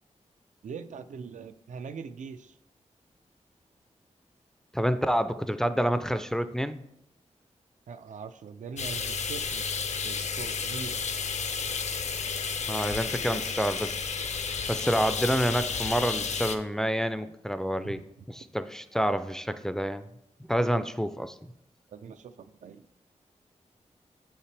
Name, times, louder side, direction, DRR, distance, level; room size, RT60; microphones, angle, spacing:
voice 1, 0.6-2.6 7.9-9.7 10.0-11.0 13.0-13.6 17.8-17.9 21.9-22.9, right 6 dB, 90° right, 10 dB, 0.4 m, -42 dB
voice 2, 4.7-6.8 12.7-14.3 14.7-18.0 18.3-20.0 20.5-21.3, equal, 5° left, 11 dB, 0.3 m, -28 dB
sound 1, 8.8-16.6, left 5 dB, 65° left, 0.5 m, -32 dB
6.7 x 5.6 x 3.3 m, 0.80 s
wide cardioid pair, 115°, 12 cm